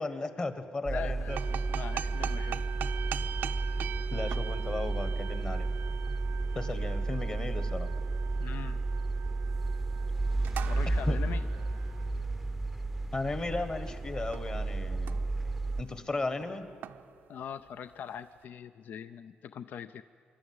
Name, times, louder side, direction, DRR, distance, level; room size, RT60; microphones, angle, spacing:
voice 1, 0.0-1.4 4.1-5.7 6.5-7.9 11.1-11.2 13.1-15.3 15.8-16.7, left 3 dB, 25° left, 10 dB, 1.4 m, -35 dB
sound 1, 0.8-15.8, right 3 dB, 5° right, 0.7 m, -32 dB
voice 2, 0.9-2.7 8.4-8.8 10.7-11.4 17.3-20.0, left 8 dB, 60° left, 12 dB, 0.5 m, -42 dB
sound 2, 1.3-14.0 14.3-14.7 14.9-15.4 15.7-16.0 16.4-17.9, right 9 dB, 70° right, 0.6 m, -42 dB
25.0 x 13.0 x 9.5 m, 2.3 s
cardioid pair, 135°, 3 cm